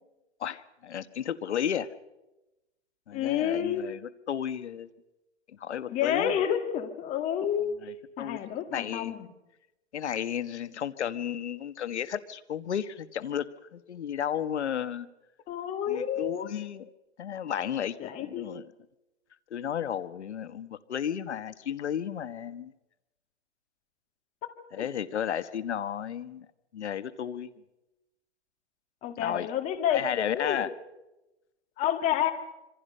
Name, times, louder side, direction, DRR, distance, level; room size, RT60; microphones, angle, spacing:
voice 1, 0.4-1.9 3.1-4.9 5.6-6.3 7.8-8.4 8.7-9.1 9.9-15.1 15.9-16.9 17.2-18.7 19.5-22.7 24.7-26.5 26.7-27.5 29.2-29.5 29.9-30.7, left 9 dB, 70° left, 14 dB, 1.4 m, -33 dB
voice 2, 3.1-3.8 5.9-7.7 8.2-9.3 15.5-16.6 18.0-18.5 24.8-24.9 29.0-30.0 30.3-30.6 31.8-32.3, left 10 dB, 20° left, 8 dB, 1.8 m, -29 dB
26.5 x 24.5 x 5.5 m, 1.0 s
hypercardioid pair, 150°, 35 cm